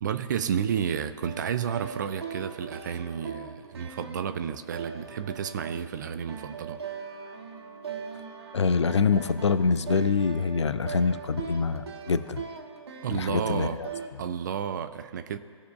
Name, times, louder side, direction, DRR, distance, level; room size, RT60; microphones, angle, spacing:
voice 1, 0.0-6.8 13.0-13.8 14.2-15.4, right 8 dB, 40° right, 10 dB, 0.5 m, -31 dB
sound 1, 1.2-14.1, right 6 dB, 55° right, 1.1 m, -40 dB
voice 2, 8.5-12.4 13.1-13.9, left 5 dB, 65° left, 14 dB, 0.6 m, -25 dB
18.0 x 6.8 x 2.4 m, 2.2 s
figure-of-eight pair, 130°, 16 cm